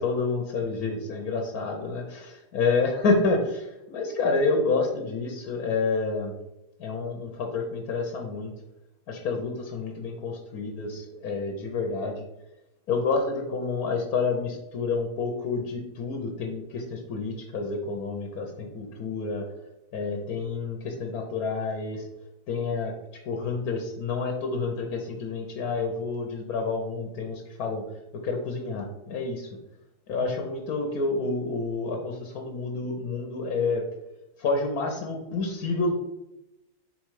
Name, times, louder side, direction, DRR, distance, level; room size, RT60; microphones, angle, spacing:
voice 1, 0.0-6.3 6.8-8.5 9.1-12.2 12.9-19.4 19.9-22.0 22.5-22.9 23.3-27.8 28.1-29.5 30.1-33.8 34.4-35.9, left 4 dB, 60° left, 2 dB, 1.2 m, -29 dB
5.4 x 3.9 x 4.7 m, 0.93 s
omnidirectional pair, 2.1 m